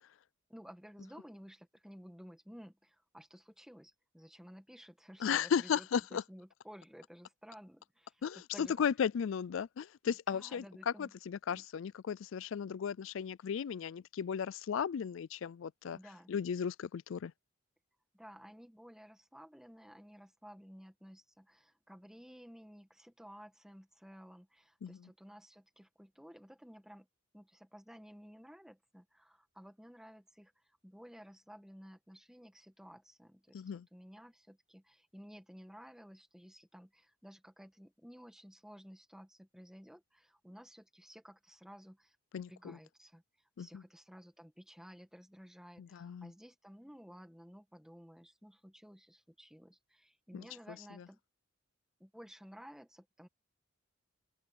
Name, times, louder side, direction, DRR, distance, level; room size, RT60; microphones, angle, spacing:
voice 1, 0.5-8.8 10.3-11.1 11.5-11.6 15.9-16.3 18.1-27.1 27.3-43.2 43.6-51.2 52.0-53.3, equal, ahead, 1.8 m, -55 dB
voice 2, 5.2-6.2 8.2-16.0 16.3-17.3 24.8-25.1 33.5-33.9 42.3-42.8 43.6-43.8 45.8-46.3 50.3-51.0, left 7 dB, 70° left, 0.4 m, -36 dB
open air
head